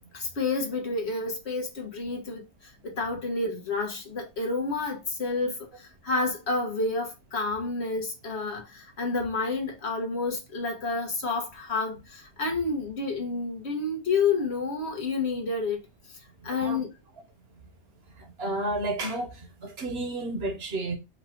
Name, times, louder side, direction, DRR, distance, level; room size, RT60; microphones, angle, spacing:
voice 1, 0.1-2.4 2.8-15.8 16.4-16.9, left 3 dB, 75° left, 1.5 m, -29 dB
voice 2, 16.5-16.8 18.4-21.0, right 2 dB, 70° right, 1.4 m, -31 dB
4.7 x 2.5 x 4.4 m
omnidirectional pair, 1.1 m